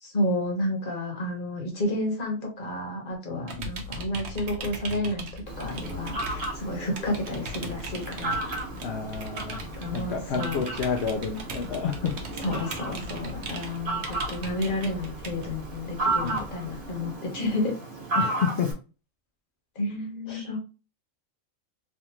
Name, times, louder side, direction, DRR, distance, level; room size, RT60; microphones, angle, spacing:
voice 1, 0.0-5.3 5.6-8.4 9.6-10.6 12.4-17.8 19.7-20.6, left 1 dB, 40° left, 0 dB, 1.2 m, -31 dB
voice 2, 3.3-3.7 8.8-9.6 9.9-12.1 16.2-16.5 18.2-18.7 20.3-20.5, left 6 dB, 65° left, 2 dB, 0.8 m, -30 dB
sound 1, 3.5-17.1, right 1 dB, 60° right, 0.9 m, -39 dB
Fowl, 5.5-18.7, right 2 dB, 40° right, 1.3 m, -34 dB
3.5 x 2.5 x 2.9 m, 0.33 s
omnidirectional pair, 1.4 m